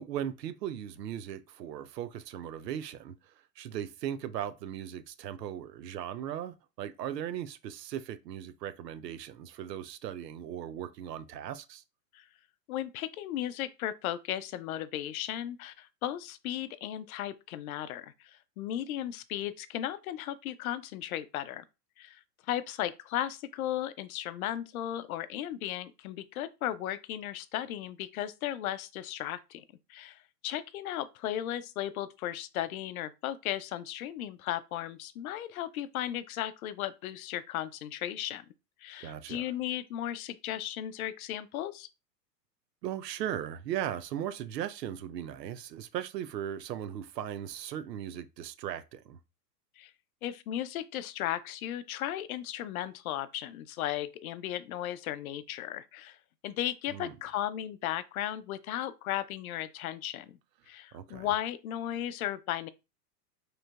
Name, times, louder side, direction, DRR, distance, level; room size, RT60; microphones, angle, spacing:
voice 1, 0.0-11.8 39.0-39.5 42.8-49.2 56.9-57.2 60.9-61.3, right 10 dB, 75° right, 0.7 m, -38 dB
voice 2, 12.7-21.6 22.0-29.6 29.9-38.4 38.8-41.9 49.8-49.9 50.2-56.2 56.4-60.4 60.7-62.7, left 12 dB, 60° left, 0.5 m, -36 dB
4.9 x 3.2 x 2.3 m
hypercardioid pair, 115°, 49 cm